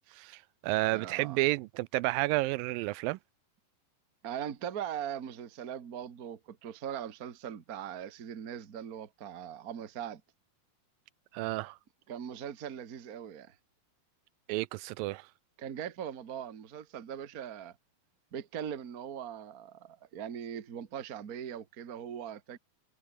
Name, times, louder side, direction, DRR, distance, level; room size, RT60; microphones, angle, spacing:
voice 1, 0.1-3.2 11.3-11.8 14.5-15.3, right 20 dB, 85° right, 2.3 m, -31 dB
voice 2, 0.9-1.4 4.2-10.2 12.1-13.5 15.6-17.8 18.3-22.6, right 9 dB, 40° right, 1.3 m, -40 dB
omnidirectional pair, 4.0 m